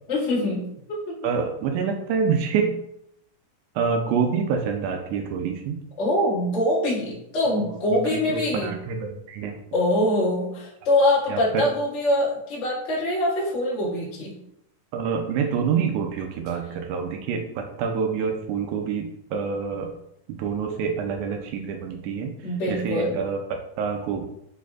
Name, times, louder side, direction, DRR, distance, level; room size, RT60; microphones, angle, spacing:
voice 1, 0.1-0.6 0.9-1.1 6.0-8.7 9.7-14.4 22.4-23.1, left 1 dB, 40° left, -6 dB, 1.0 m, -24 dB
voice 2, 1.2-2.8 3.8-5.8 7.9-9.6 11.3-11.7 14.9-19.9 20.3-22.3 22.7-24.2, right 6 dB, 80° right, 3 dB, 2.0 m, -27 dB
5.1 x 4.3 x 2.4 m, 0.77 s
omnidirectional pair, 3.6 m